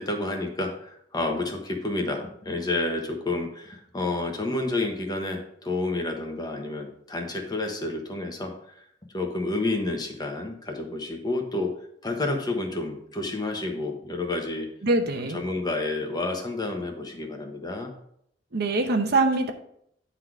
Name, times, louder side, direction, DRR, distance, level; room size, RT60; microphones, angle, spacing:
voice 1, 0.0-8.5 9.1-11.7 12.0-14.7 15.3-17.9, left 2 dB, 20° left, 3 dB, 1.1 m, -30 dB
voice 2, 14.8-15.4 18.5-19.5, right 2 dB, 60° right, 5 dB, 0.9 m, -23 dB
9.5 x 4.1 x 4.8 m, 0.69 s
head